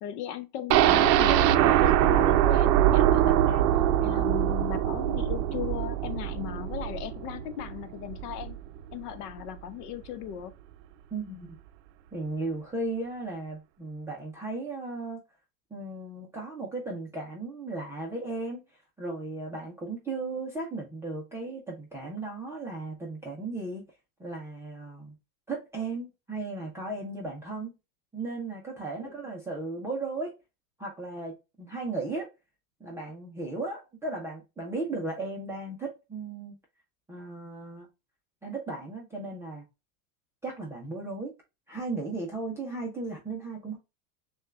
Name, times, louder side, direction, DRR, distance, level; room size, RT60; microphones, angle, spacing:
voice 1, 0.0-3.7 4.0-8.6 8.9-10.5 29.0-29.1, left 11 dB, 70° left, 0.9 m, -37 dB
sound 1, 0.7-8.6 8.9-9.0 9.4-9.5, right 12 dB, 85° right, 0.5 m, -23 dB
voice 2, 11.1-11.6 12.1-15.2 15.7-18.6 19.0-23.8 24.2-25.1 25.5-27.7 28.1-30.3 30.8-32.3 32.8-36.6 37.1-37.9 38.4-39.6 40.4-41.3 41.7-43.8, right 3 dB, 5° right, 0.3 m, -36 dB
6.3 x 2.3 x 2.3 m
supercardioid pair, 140°, 48 cm